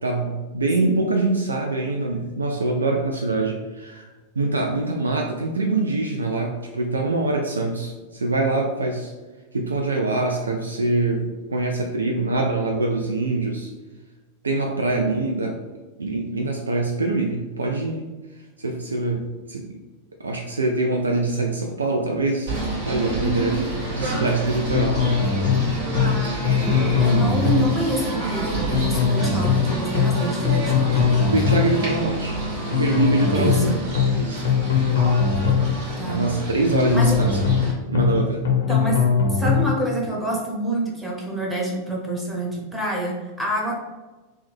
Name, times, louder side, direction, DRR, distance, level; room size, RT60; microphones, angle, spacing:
voice 1, 0.0-4.1 4.4-9.1 9.5-13.7 14.4-15.6 16.0-18.1 18.6-19.8 20.2-22.6 22.9-25.0 31.3-32.4 32.8-33.7 34.2-34.5 36.1-37.4 37.9-38.5, right 2 dB, 75° right, 1 dB, 0.3 m, -24 dB
Singing / Bird, 22.4-37.7, right 2 dB, 55° right, 1.2 m, -29 dB
voice 2, 23.1-23.6 26.5-31.0 33.3-33.7 36.0-36.3 36.9-37.2 38.7-39.0 39.3-43.8, right 2 dB, 5° right, -4 dB, 0.9 m, -27 dB
sound 1, 24.7-25.6 25.9-26.2 26.4-27.7 28.7-29.6 29.9-30.2 30.4-31.7 32.7-33.6 33.9-34.2 34.4-35.7 36.7-37.6 37.9-38.2 38.4-39.7, left 6 dB, 65° left, 0.6 m, -20 dB
3.1 x 2.2 x 3.3 m, 1.2 s
figure-of-eight pair, 90°, 0 cm